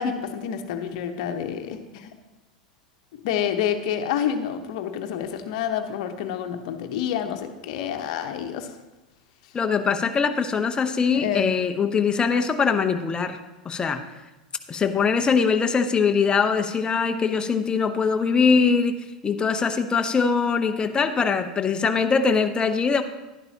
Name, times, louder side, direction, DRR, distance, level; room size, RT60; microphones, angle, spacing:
voice 1, 0.0-2.1 3.1-8.7 11.1-11.6, left 8 dB, 60° left, 6 dB, 1.0 m, -28 dB
voice 2, 9.5-13.4 13.6-14.0 14.7-23.0, left 5 dB, 20° left, 7 dB, 0.8 m, -22 dB
11.0 x 11.0 x 2.9 m, 1.1 s
hypercardioid pair, 95°, 4 cm